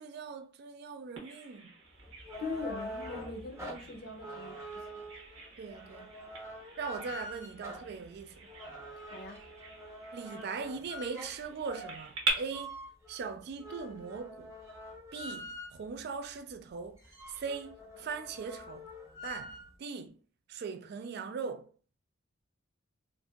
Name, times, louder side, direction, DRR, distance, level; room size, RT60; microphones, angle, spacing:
voice 1, 0.0-1.7 5.6-6.1 6.8-8.5 10.1-12.8 13.1-14.5 15.1-17.0 17.3-18.9 19.2-20.2 20.5-21.7, right 5 dB, 55° right, 0.3 m, -40 dB
Bird vocalization bird call bird song, 1.2-12.3, right 3 dB, 75° right, 0.9 m, -43 dB
sound 1, 2.0-16.0 16.5-16.6 16.8-19.7, equal, 15° right, 0.8 m, -45 dB
voice 2, 2.4-4.9 5.5-5.6 9.1-9.5, left 3 dB, 50° left, 0.5 m, -41 dB
2.7 x 2.5 x 2.3 m
head